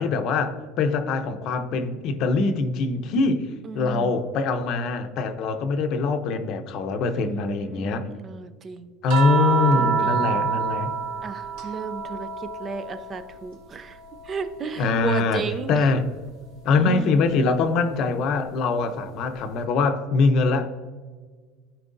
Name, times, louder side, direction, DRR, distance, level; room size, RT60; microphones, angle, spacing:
voice 1, 0.0-3.5 3.7-8.1 9.0-10.9 14.8-15.4 15.7-16.0 16.6-20.8, left 4 dB, 55° left, 0.7 m, -23 dB
voice 2, 3.6-4.2 7.2-9.0 9.7-10.3 11.2-14.0 14.2-15.8 16.7-17.2, right 5 dB, 30° right, 0.5 m, -34 dB
sound 1, 9.1-13.6 13.9-15.6 17.1-17.3, right 6 dB, 70° right, 1.4 m, -28 dB
13.0 x 4.6 x 2.6 m
supercardioid pair, 125°, 0 cm